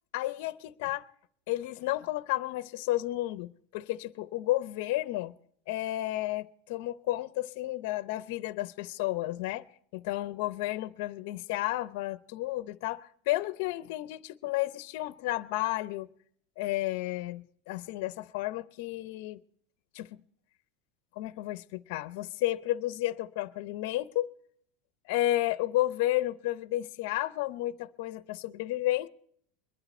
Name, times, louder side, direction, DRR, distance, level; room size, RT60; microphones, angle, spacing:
voice 1, 0.1-1.0 1.5-5.3 5.7-9.6 9.9-16.1 16.6-19.4 19.9-20.2 21.2-24.3 25.1-29.1, left 16 dB, 60° left, 0.6 m, -32 dB
22.0 x 11.0 x 4.3 m
supercardioid pair, 160°, 0 cm